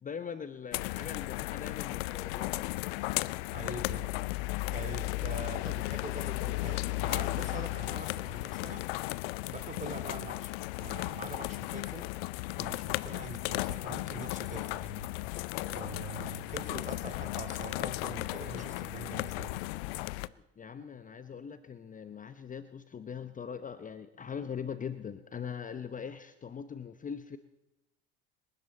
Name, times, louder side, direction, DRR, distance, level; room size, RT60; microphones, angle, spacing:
voice 1, 0.0-2.8 20.3-27.4, left 7 dB, 25° left, 11 dB, 0.9 m, -41 dB
sound 1, 0.7-20.3, left 21 dB, 70° left, 0.6 m, -35 dB
voice 2, 3.5-4.1 4.7-8.9 9.5-12.1 12.6-15.1 15.6-19.6, right 3 dB, 25° right, 8 dB, 2.7 m, -44 dB
26.5 x 11.0 x 4.2 m, 0.94 s
hypercardioid pair, 70°, 32 cm